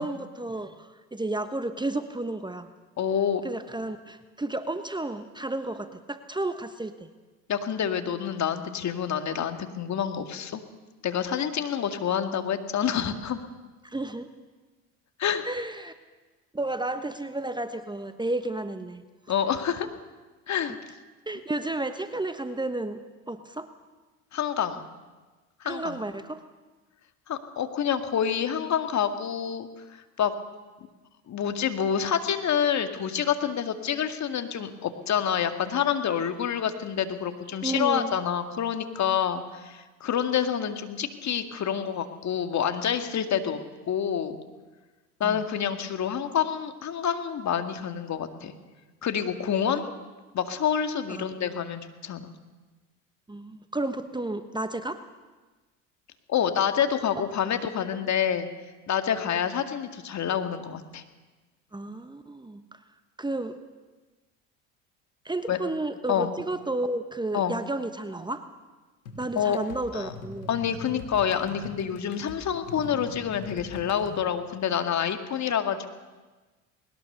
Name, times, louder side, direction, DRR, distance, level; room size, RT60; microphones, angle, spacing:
voice 1, 0.0-2.7 3.4-7.1 13.8-14.3 15.4-15.9 16.5-19.0 21.3-23.0 23.3-23.7 25.6-26.4 37.6-38.1 45.2-45.4 51.1-51.2 53.3-55.0 61.7-62.6 63.2-63.6 65.2-68.4 69.2-70.5, right 2 dB, 10° right, 10 dB, 1.2 m, -32 dB
voice 2, 3.0-3.4 7.5-10.6 11.0-13.4 15.2-15.4 19.3-19.9 20.5-20.8 24.3-24.8 25.6-26.0 27.3-30.3 31.3-43.6 43.9-44.4 45.2-48.5 49.0-49.8 50.3-52.3 56.3-58.5 58.9-61.0 65.5-65.6 66.1-66.3 67.3-67.6 69.4-69.6 69.9-70.1 70.5-75.9, left 8 dB, 45° left, 7 dB, 2.1 m, -27 dB
sound 1, 69.0-74.2, left 3 dB, 90° left, 3.1 m, -42 dB
20.5 x 19.5 x 6.8 m, 1.3 s
hypercardioid pair, 75°, 39 cm